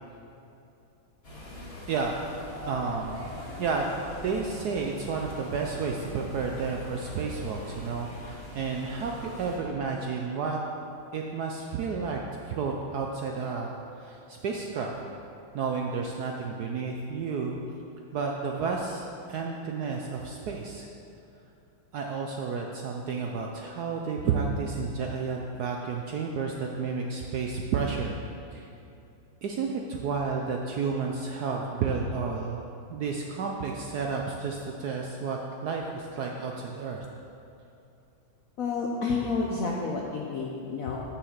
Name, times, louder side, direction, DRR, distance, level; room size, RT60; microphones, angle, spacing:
sound 1, 1.2-9.6, left 1 dB, 30° left, 1.8 m, -42 dB
voice 1, 1.9-2.3 2.7-3.3 3.6-10.6 11.1-12.2 12.5-14.9 15.5-17.6 18.1-20.9 21.9-28.2 28.5-28.7 29.4-32.6 32.9-37.0, right 5 dB, 70° right, 1 dB, 0.9 m, -31 dB
voice 2, 38.6-41.0, left 4 dB, 70° left, -2 dB, 0.8 m, -30 dB
6.9 x 5.8 x 7.2 m, 2.8 s
omnidirectional pair, 2.3 m